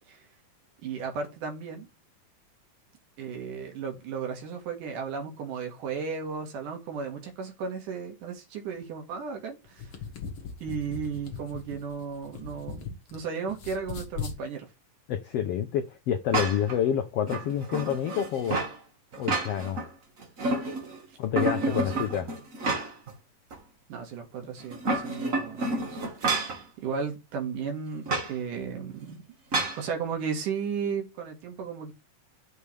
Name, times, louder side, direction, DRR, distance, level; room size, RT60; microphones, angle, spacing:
voice 1, 0.8-1.9 3.2-9.9 10.6-14.7 21.6-22.3 23.9-29.2 29.8-31.9, right 6 dB, 80° right, 3.5 m, -35 dB
sound 1, 9.7-13.2 13.5-14.4, left 6 dB, 50° left, 2.3 m, -39 dB
voice 2, 15.1-18.6 19.2-19.9 21.2-22.3, left 9 dB, 80° left, 1.4 m, -28 dB
sound 2, 16.3-16.8 17.3-18.8 19.1-19.9 20.2-21.0 21.4-23.1 23.5-23.6 24.6-26.6 28.1-28.3 29.5-29.8, right 2 dB, 40° right, 1.2 m, -29 dB
9.3 x 7.0 x 3.3 m
omnidirectional pair, 3.6 m